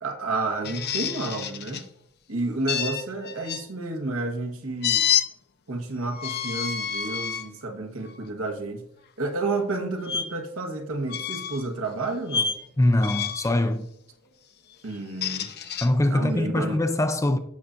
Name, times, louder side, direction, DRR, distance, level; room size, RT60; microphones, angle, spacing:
voice 1, 0.0-1.9 2.3-5.1 5.7-8.9 9.2-12.5 14.8-15.5 16.1-16.8, right 2 dB, 70° right, 1.3 m, -30 dB
sound 1, 0.6-1.8 2.7-3.6 4.8-5.3 6.1-7.4 8.1-8.3 10.1-10.2 11.1-11.6 12.3-12.6 13.0-13.5 14.9-15.9, left 8 dB, 50° left, 0.7 m, -28 dB
voice 2, 12.8-13.9 15.8-17.4, left 1 dB, 15° left, 0.4 m, -22 dB
16.0 x 5.6 x 2.5 m
head